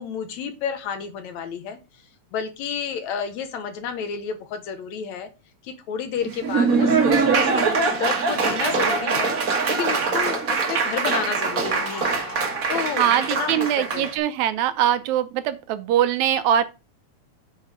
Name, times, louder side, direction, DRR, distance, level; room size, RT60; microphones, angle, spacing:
voice 1, 0.0-1.8 2.3-5.3 5.6-9.4 9.7-12.2 12.7-13.7 13.9-14.1, left 7 dB, 70° left, 2.3 m, -30 dB
Laughter / Applause, 6.2-14.1, right 4 dB, 50° right, 1.0 m, -23 dB
sound 1, 10.9-13.4, left 1 dB, 50° left, 3.0 m, -39 dB
voice 2, 13.0-16.6, right 10 dB, 75° right, 1.9 m, -22 dB
8.1 x 4.6 x 4.9 m
omnidirectional pair, 3.5 m